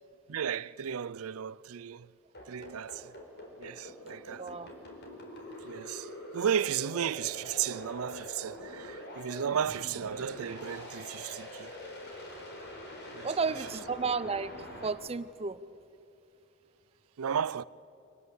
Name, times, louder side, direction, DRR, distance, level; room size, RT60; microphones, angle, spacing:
voice 1, 0.3-2.1 2.5-3.1 3.6-4.5 5.6-11.7 13.1-13.3 17.2-17.6, right 8 dB, 75° right, 0.5 m, -34 dB
sound 1, 2.3-14.9, left 1 dB, 50° left, 4.3 m, -44 dB
voice 2, 4.4-4.7 13.2-15.6, right 4 dB, 30° right, 0.7 m, -33 dB
25.0 x 18.5 x 8.2 m
head